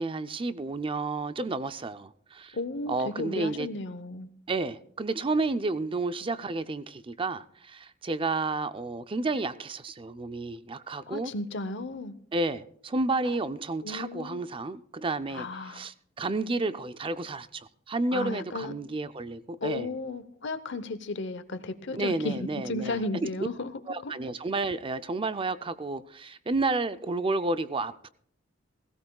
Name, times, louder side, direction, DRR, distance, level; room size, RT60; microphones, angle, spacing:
voice 1, 0.0-2.6 2.9-3.7 4.5-11.3 12.3-19.9 21.9-23.0 23.9-28.1, right 3 dB, 25° right, 0.5 m, -31 dB
voice 2, 2.5-4.3 11.0-12.1 13.8-14.4 15.3-15.9 18.1-18.7 19.6-23.7 24.0-24.1, left 2 dB, 65° left, 0.9 m, -34 dB
17.0 x 17.0 x 2.3 m
head